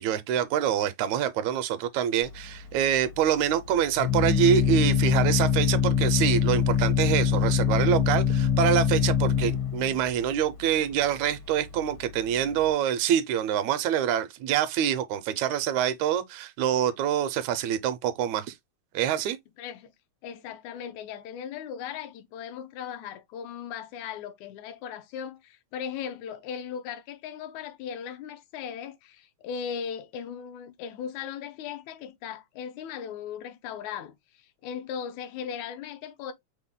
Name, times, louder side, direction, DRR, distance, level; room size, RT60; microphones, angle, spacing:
voice 1, 0.0-18.5 18.9-19.4, right 9 dB, 80° right, 1.9 m, -26 dB
Organ, 2.2-12.7, left 7 dB, 70° left, 1.2 m, -25 dB
voice 2, 19.6-19.9 20.2-34.1 34.6-36.3, left 8 dB, 85° left, 2.0 m, -37 dB
6.1 x 2.2 x 3.5 m
omnidirectional pair, 3.3 m